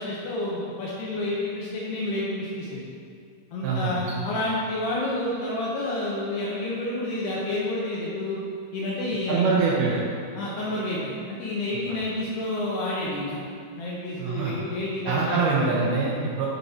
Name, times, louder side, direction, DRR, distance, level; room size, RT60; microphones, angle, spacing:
voice 1, 0.0-2.8 3.5-8.4 8.7-9.6 10.3-13.4 13.8-15.5, left 1 dB, 75° left, -5 dB, 2.4 m, -29 dB
voice 2, 3.6-4.3 9.3-10.0 14.2-14.5 15.1-16.5, right 4 dB, 75° right, -4 dB, 2.7 m, -24 dB
12.0 x 5.3 x 4.2 m, 2.3 s
omnidirectional pair, 5.8 m